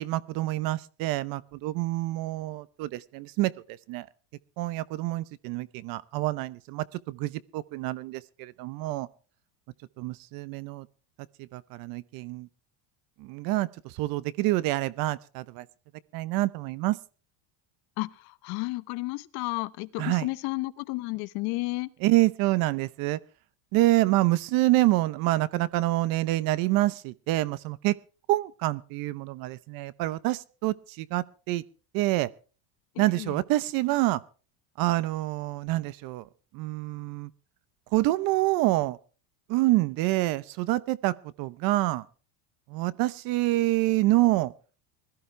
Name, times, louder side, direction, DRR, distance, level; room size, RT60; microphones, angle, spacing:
voice 1, 0.0-3.5 3.9-4.1 4.6-9.1 10.0-10.9 11.4-12.5 13.2-15.6 16.1-17.0 20.0-20.3 22.0-23.2 23.7-27.9 28.3-31.6 31.9-32.3 33.0-34.2 34.8-36.3 36.5-37.3 37.9-39.0 39.5-42.1 42.7-44.5, right 18 dB, 55° right, 0.8 m, -27 dB
voice 2, 18.0-21.9 32.9-33.4, left 23 dB, 60° left, 1.1 m, -32 dB
21.0 x 14.5 x 3.3 m
cardioid pair, 160°, 43 cm